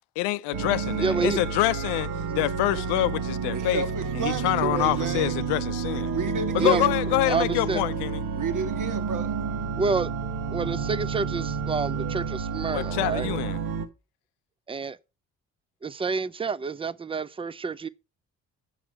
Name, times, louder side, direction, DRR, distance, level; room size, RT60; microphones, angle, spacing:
voice 1, 0.2-2.1 2.4-3.8 4.2-6.1 6.5-8.2 12.7-13.6, left 17 dB, 75° left, 0.5 m, -26 dB
sound 1, 0.5-13.9, right 5 dB, 65° right, 1.3 m, -30 dB
voice 2, 1.0-1.4 2.3-2.4 6.6-6.8 7.3-7.8 9.8-10.1 10.5-13.4 14.7-15.0 15.8-17.9, right 4 dB, 15° right, 0.5 m, -28 dB
voice 3, 3.5-5.4 6.1-6.9 8.4-9.4, right 4 dB, 45° right, 1.6 m, -31 dB
8.0 x 6.0 x 5.2 m
hypercardioid pair, 50°, 41 cm